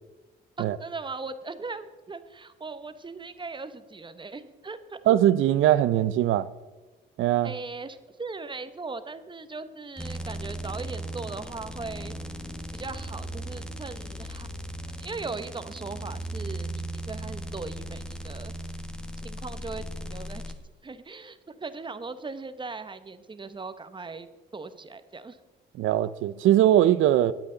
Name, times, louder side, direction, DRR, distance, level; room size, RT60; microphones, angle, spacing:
voice 1, 0.6-5.0 7.4-12.1 12.7-14.5 15.0-18.5 19.2-20.4 20.8-24.3 24.5-25.4, right 4 dB, 25° right, 1.0 m, -39 dB
voice 2, 5.1-6.5 7.2-7.5 25.8-27.3, right 12 dB, 85° right, 0.6 m, -21 dB
sound 1, 10.0-20.5, right 1 dB, 5° left, 1.3 m, -37 dB
21.5 x 8.2 x 3.9 m
cardioid pair, 90°, 20 cm